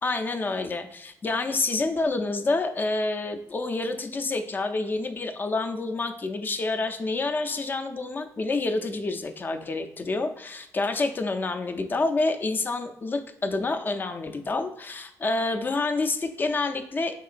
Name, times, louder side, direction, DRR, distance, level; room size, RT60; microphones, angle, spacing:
voice 1, 0.0-17.1, left 3 dB, 30° left, 6 dB, 0.4 m, -28 dB
3.7 x 3.6 x 2.4 m, 0.78 s
cardioid pair, 100°, 6 cm